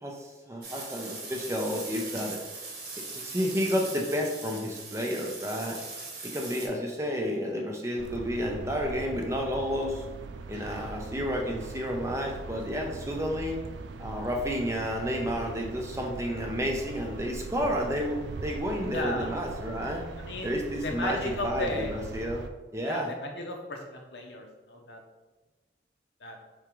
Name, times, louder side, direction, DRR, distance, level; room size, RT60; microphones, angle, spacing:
voice 1, 0.0-2.4 3.2-5.8 6.2-10.0 10.5-13.6 14.0-20.1 20.4-22.4 22.7-23.1, equal, 15° right, 0 dB, 0.5 m, -31 dB
sound 1, 0.6-6.7, right 3 dB, 65° right, 1.0 m, -40 dB
sound 2, 8.0-22.5, right 3 dB, 80° right, 0.4 m, -41 dB
voice 2, 18.9-19.3 20.2-22.0 22.9-25.0 26.2-26.4, left 1 dB, 70° left, 2 dB, 0.7 m, -35 dB
4.7 x 3.5 x 3.0 m, 1.2 s
head